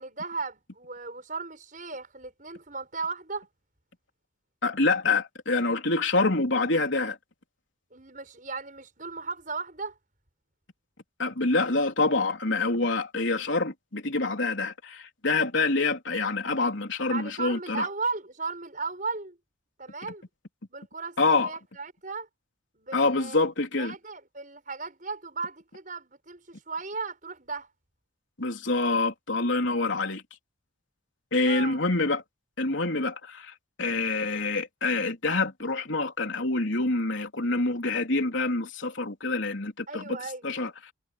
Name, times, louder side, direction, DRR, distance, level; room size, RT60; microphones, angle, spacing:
voice 1, 0.0-3.5 7.9-10.0 17.1-19.4 19.8-20.2 20.7-22.3 22.8-23.4 23.8-27.7 31.5-31.8 39.9-40.5, right 4 dB, 40° right, 6.9 m, -36 dB
voice 2, 4.6-7.2 11.2-17.9 21.2-21.5 22.9-23.9 28.4-30.2 31.3-32.2 32.6-40.0 40.4-40.9, left 3 dB, 70° left, 3.6 m, -26 dB
head